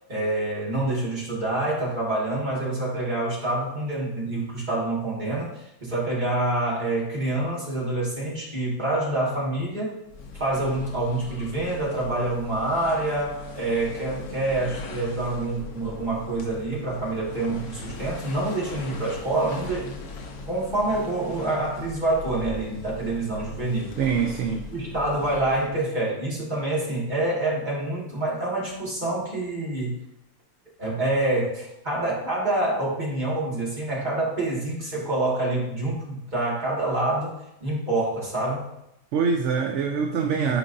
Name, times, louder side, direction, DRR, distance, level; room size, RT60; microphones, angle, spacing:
voice 1, 0.1-9.9 10.3-20.0 20.5-24.0 24.7-30.0 30.8-38.7, right 2 dB, 30° right, -5 dB, 2.1 m, -27 dB
sound 1, 10.0-25.9, left 3 dB, 75° left, 1.3 m, -40 dB
voice 2, 24.0-24.7 39.1-40.6, right 6 dB, 60° right, 3 dB, 0.8 m, -24 dB
9.1 x 4.9 x 2.7 m, 0.85 s
omnidirectional pair, 1.6 m